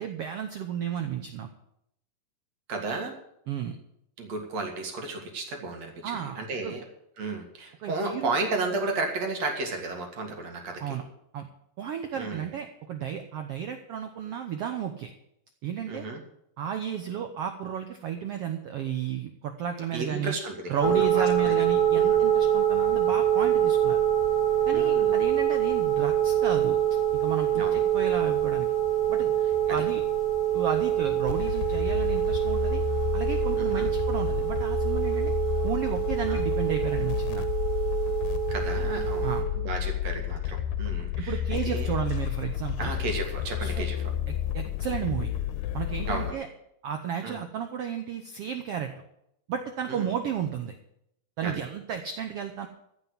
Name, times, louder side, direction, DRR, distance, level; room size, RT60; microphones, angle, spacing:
voice 1, 0.0-1.5 3.5-3.8 6.0-6.4 6.6-6.7 7.8-8.4 10.8-11.0 11.3-11.5 11.8-15.1 15.6-16.0 16.6-20.3 20.7-24.0 24.7-26.8 27.1-28.7 29.1-29.4 29.7-30.0 30.5-32.8 33.1-35.3 35.6-37.4 39.2-39.5 41.2-42.9 43.6-43.9 44.3-45.3 45.7-46.5 46.8-49.0 49.5-50.8 51.4-52.7, right 8 dB, 75° right, 6 dB, 1.4 m, -33 dB
voice 2, 2.7-3.2 4.2-6.8 7.2-11.0 12.2-12.5 15.9-16.2 19.9-21.6 21.9-22.2 24.7-25.2 27.5-27.8 29.7-29.8 33.5-33.9 36.3-36.4 38.5-41.9 42.8-44.0 46.1-46.3 47.2-47.4 49.9-50.1 51.4-51.6, right 3 dB, 55° right, 3 dB, 3.0 m, -33 dB
sound 1, 20.8-39.4, right 10 dB, 35° left, 6.5 m, -25 dB
sound 2, 31.3-46.3, left 11 dB, 85° left, 2.3 m, -31 dB
15.0 x 5.7 x 9.5 m, 0.77 s
omnidirectional pair, 3.9 m